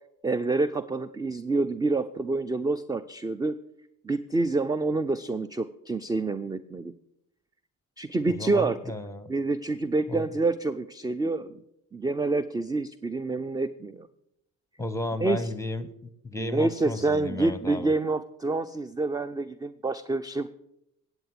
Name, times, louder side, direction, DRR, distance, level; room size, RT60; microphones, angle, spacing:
voice 1, 0.2-3.6 4.0-6.9 8.0-8.8 9.3-11.6 11.9-14.1 15.2-15.5 16.4-20.5, right 3 dB, 10° right, 14 dB, 0.3 m, -27 dB
voice 2, 8.3-9.3 10.1-10.3 14.8-15.9 16.2-17.9, left 2 dB, 5° left, 13 dB, 0.9 m, -33 dB
9.1 x 8.0 x 5.9 m, 0.79 s
hypercardioid pair, 60°, 41 cm